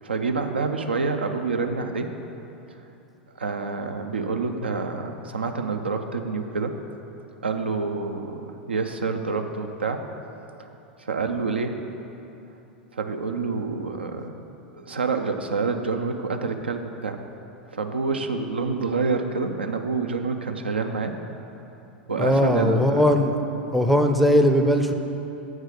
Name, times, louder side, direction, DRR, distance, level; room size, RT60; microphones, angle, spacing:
voice 1, 0.0-2.1 3.4-6.8 7.4-10.1 10.6-10.7 11.0-11.8 12.9-14.4 14.8-17.2 17.7-21.2 22.1-23.2, right 4 dB, 80° right, 6 dB, 0.5 m, -27 dB
voice 2, 22.2-23.4 23.7-24.9, equal, ahead, 4 dB, 0.5 m, -19 dB
7.5 x 4.7 x 6.5 m, 2.9 s
figure-of-eight pair, 90°, 6 cm